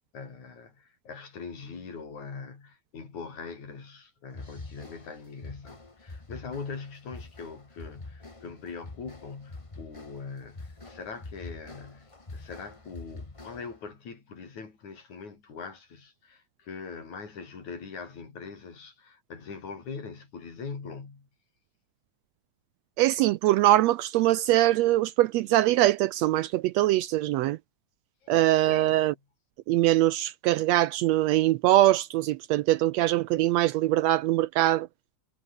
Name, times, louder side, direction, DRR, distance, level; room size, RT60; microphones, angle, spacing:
voice 1, 0.0-21.3 28.2-28.3 28.6-29.0, left 5 dB, 75° left, 6.1 m, -42 dB
sound 1, 4.3-13.9, left 2 dB, 20° left, 0.9 m, -45 dB
voice 2, 23.0-27.6 28.3-29.1 29.7-34.9, right 15 dB, 75° right, 1.6 m, -22 dB
omnidirectional pair, 3.4 m